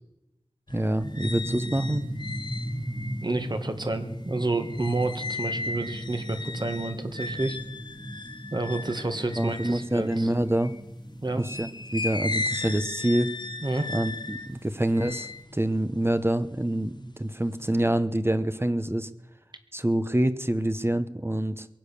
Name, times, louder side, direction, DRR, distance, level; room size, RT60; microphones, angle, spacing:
sound 1, 0.7-10.8 11.4-16.9 17.3-17.9, left 3 dB, 50° left, 1.2 m, -37 dB
voice 1, 0.7-2.0 9.4-10.7 11.4-13.3 13.9-19.1 19.7-21.7, right 1 dB, 25° right, 11 dB, 0.9 m, -26 dB
sound 2, 1.0-15.4, equal, 5° right, 2.0 m, -38 dB
voice 2, 3.2-7.6 8.5-10.3 11.2-11.4 13.6-13.9, right 2 dB, 50° right, 7 dB, 1.9 m, -29 dB
22.5 x 8.4 x 6.9 m, 0.93 s
wide cardioid pair, 40°, 10 cm